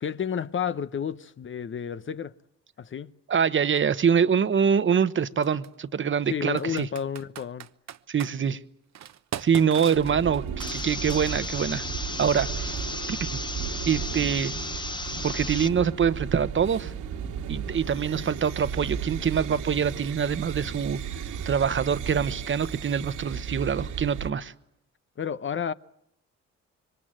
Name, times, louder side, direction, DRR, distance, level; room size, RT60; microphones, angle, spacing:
voice 1, 0.0-2.3 2.8-3.1 6.3-7.7 25.2-25.7, left 7 dB, 40° left, 0.9 m, -31 dB
voice 2, 3.3-6.9 8.1-8.6 9.4-10.4 10.7-11.8 12.2-12.8 13.1-13.3 13.9-14.5 15.2-16.9 17.5-21.0 21.4-24.5, right 7 dB, 40° right, 1.2 m, -24 dB
Computer keyboard, 3.8-3.9 5.4-5.7 6.6-8.3 8.9-11.6, right 10 dB, 60° right, 1.1 m, -40 dB
sound 1, 9.9-24.3, right 7 dB, 90° right, 2.6 m, -35 dB
sound 2, 10.6-15.7, left 2 dB, 15° left, 1.0 m, -35 dB
26.5 x 23.5 x 7.6 m
cardioid pair, 90°, 30 cm